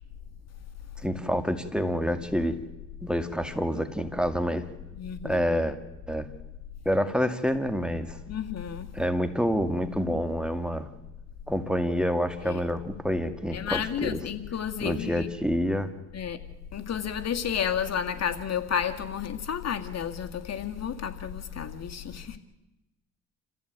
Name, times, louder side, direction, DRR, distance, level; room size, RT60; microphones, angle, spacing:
voice 1, 1.0-2.6 3.0-4.6 5.2-5.8 6.1-6.3 6.9-8.2 8.9-10.9 11.5-14.2 14.8-15.9, equal, 5° right, 8 dB, 2.1 m, -27 dB
voice 2, 5.0-5.4 8.3-8.9 12.4-12.7 13.5-15.3 16.1-16.4 16.7-22.4, left 8 dB, 60° left, 6 dB, 2.1 m, -31 dB
28.0 x 15.0 x 9.4 m, 0.97 s
cardioid pair, 90°, 30 cm